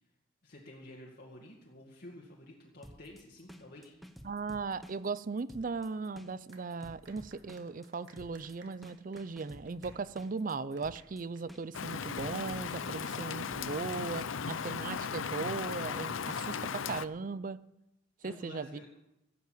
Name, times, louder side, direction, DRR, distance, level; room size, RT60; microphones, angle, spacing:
voice 1, 0.4-3.9 18.2-18.9, left 1 dB, 55° left, -2 dB, 2.0 m, -51 dB
sound 1, 2.8-14.5, equal, ahead, 0.9 m, -52 dB
voice 2, 4.2-17.6 18.2-18.8, right 4 dB, 45° right, 17 dB, 0.5 m, -38 dB
sound 2, 6.5-12.5, right 4 dB, 65° right, 1.8 m, -62 dB
Rain, 11.7-17.1, left 6 dB, 90° left, 0.6 m, -37 dB
15.5 x 8.3 x 7.7 m, 0.90 s
head